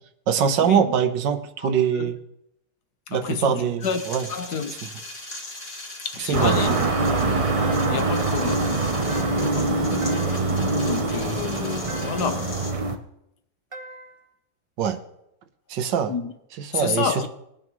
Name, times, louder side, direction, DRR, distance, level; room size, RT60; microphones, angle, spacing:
voice 1, 0.3-2.2 3.1-4.3 4.8-4.9 6.2-6.6 14.8-15.0 15.7-16.1 16.6-17.2, right 7 dB, 75° right, 1.6 m, -23 dB
voice 2, 1.6-2.1 3.1-4.0 4.3-4.7 6.0-6.8 7.9-8.8 9.4-10.2 10.8-12.7 16.1-16.3 16.7-17.3, left 6 dB, 65° left, 1.4 m, -29 dB
sound 1, 3.8-12.7, left 1 dB, 40° left, 2.5 m, -39 dB
sound 2, 6.3-13.0, right 3 dB, 50° right, 0.4 m, -24 dB
sound 3, 6.5-7.1 7.6-8.2 9.1-9.6 10.0-10.6 11.9-12.4 13.7-14.3, right 2 dB, 20° right, 1.0 m, -41 dB
21.0 x 9.1 x 3.1 m
omnidirectional pair, 2.0 m